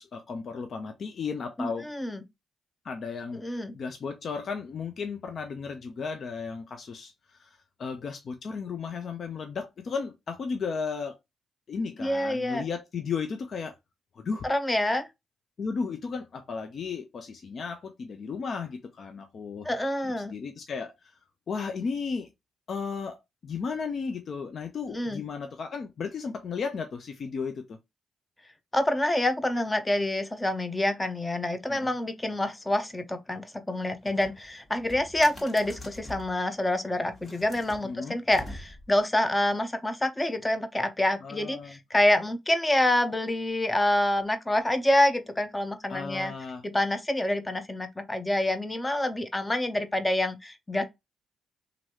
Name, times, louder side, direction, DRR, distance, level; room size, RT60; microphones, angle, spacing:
voice 1, 0.0-1.9 2.8-11.2 11.7-13.7 14.1-14.5 15.6-19.7 20.0-21.1 21.5-22.3 22.7-27.8 31.7-31.9 37.8-38.2 41.2-41.8 45.9-46.6, left 5 dB, 60° left, 0.5 m, -34 dB
voice 2, 1.6-2.2 3.4-3.8 12.0-12.6 14.4-15.1 19.6-20.3 24.9-25.2 28.7-46.3 46.6-50.8, left 1 dB, 20° left, 0.7 m, -27 dB
sound 1, 34.0-36.4 37.1-39.0, left 1 dB, 40° left, 1.7 m, -45 dB
3.0 x 2.6 x 2.8 m
supercardioid pair, 60°, 0 cm